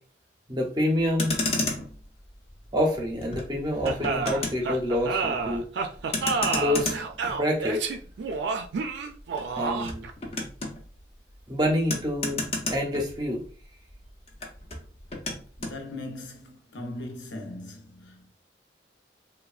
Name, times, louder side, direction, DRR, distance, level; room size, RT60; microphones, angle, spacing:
voice 1, 0.5-1.4 2.7-5.7 6.6-7.0 7.3-7.8 9.6-10.1 11.5-13.4, left 1 dB, 25° right, 0.5 m, -27 dB
Motor vehicle (road), 1.0-13.6 13.9-15.8, left 2 dB, 35° left, 0.5 m, -34 dB
sound 1, 3.8-10.1, right 4 dB, 75° right, 0.3 m, -29 dB
voice 2, 15.6-18.3, left 2 dB, 90° left, 0.6 m, -39 dB
3.2 x 2.1 x 2.4 m
head